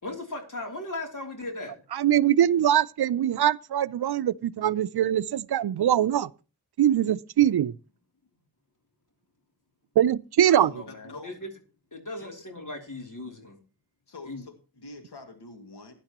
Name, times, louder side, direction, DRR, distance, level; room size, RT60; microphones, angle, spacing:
voice 1, 0.0-1.8 10.4-11.5 11.9-13.6 14.3-14.4, left 2 dB, 50° left, 3.2 m, -37 dB
voice 2, 1.9-6.3 6.8-7.7 10.0-10.7, right 10 dB, 75° right, 0.6 m, -22 dB
voice 3, 10.5-11.4 12.2-12.3 14.1-15.9, left 3 dB, 85° left, 2.3 m, -46 dB
16.0 x 10.5 x 3.0 m
cardioid pair, 55°, 39 cm